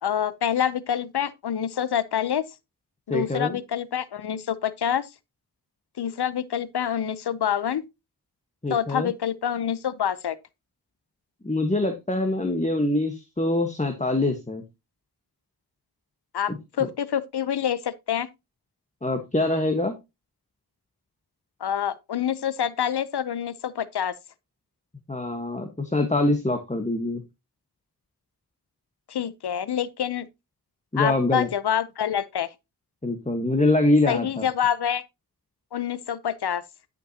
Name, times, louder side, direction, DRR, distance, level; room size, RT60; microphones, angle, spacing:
voice 1, 0.0-2.4 3.1-5.1 6.0-7.8 8.7-10.4 16.3-18.3 21.6-24.1 29.1-30.3 31.0-32.5 34.1-35.0 35.7-36.6, left 9 dB, 80° left, 0.6 m, -27 dB
voice 2, 3.1-3.6 8.6-9.1 11.4-14.6 19.0-19.9 25.1-27.2 30.9-31.5 33.0-34.5, left 2 dB, 20° left, 1.1 m, -24 dB
11.0 x 5.4 x 2.7 m
wide cardioid pair, 45°, 38 cm